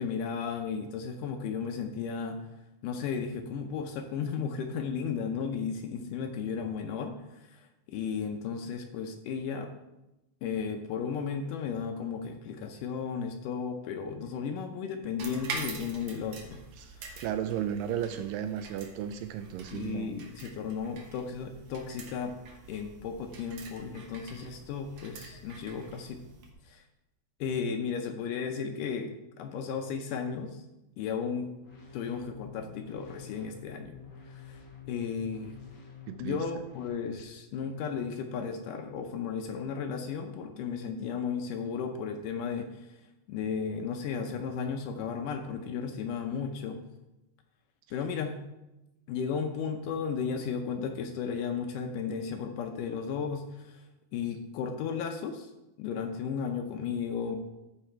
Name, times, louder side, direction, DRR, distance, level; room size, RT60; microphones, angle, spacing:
voice 1, 0.0-2.4 2.8-9.7 10.4-16.6 17.0-17.2 19.7-22.4 22.7-26.2 26.6-26.8 27.4-30.6 31.0-31.5 31.9-34.6 34.9-35.5 36.2-43.0 43.3-46.8 47.9-48.4 49.1-53.9 54.1-55.5 55.8-57.4, left 6 dB, 75° left, 5 dB, 2.1 m, -34 dB
sound 1, 15.2-26.5, right 4 dB, 60° right, 1.6 m, -45 dB
voice 2, 16.8-20.1 36.1-36.4, right 10 dB, 80° right, 10 dB, 2.1 m, -34 dB
sound 2, 31.6-36.9, left 5 dB, 60° left, 1.1 m, -49 dB
13.5 x 4.9 x 4.4 m, 0.96 s
omnidirectional pair, 4.2 m